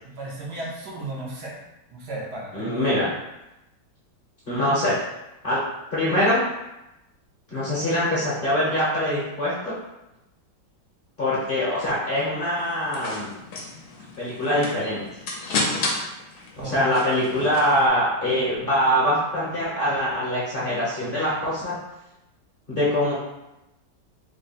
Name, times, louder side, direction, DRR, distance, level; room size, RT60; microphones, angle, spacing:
voice 1, 0.0-1.6 1.9-2.8 16.6-16.9, right 2 dB, 65° right, -4 dB, 1.4 m, -34 dB
voice 2, 2.5-3.1 4.5-5.0 5.4-5.6 5.9-6.4 7.5-9.7 11.2-13.3 14.2-15.0 16.6-21.7 22.7-23.1, equal, 35° left, -9 dB, 1.0 m, -23 dB
sound 1, 12.6-17.9, left 3 dB, 65° left, 1.2 m, -32 dB
3.8 x 2.2 x 4.1 m, 0.93 s
omnidirectional pair, 1.9 m